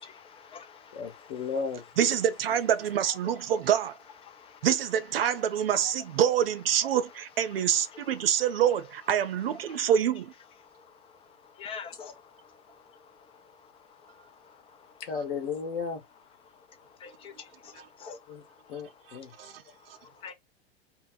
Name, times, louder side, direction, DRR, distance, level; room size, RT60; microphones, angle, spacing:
voice 1, 0.0-1.3 4.3-4.6 7.9-8.0 9.7-9.8 10.8-10.9 11.5-12.7 13.3-13.7 14.0-14.9 17.0-18.2 20.0-20.3, left 6 dB, 20° left, 0.5 m, -46 dB
voice 2, 0.9-1.8 15.0-16.0 18.3-19.3, left 5 dB, 50° left, 0.9 m, -34 dB
voice 3, 2.0-3.9 4.6-10.3 17.8-17.9 19.1-19.6, right 9 dB, 70° right, 0.5 m, -26 dB
2.2 x 2.1 x 3.7 m
figure-of-eight pair, 95°, 31 cm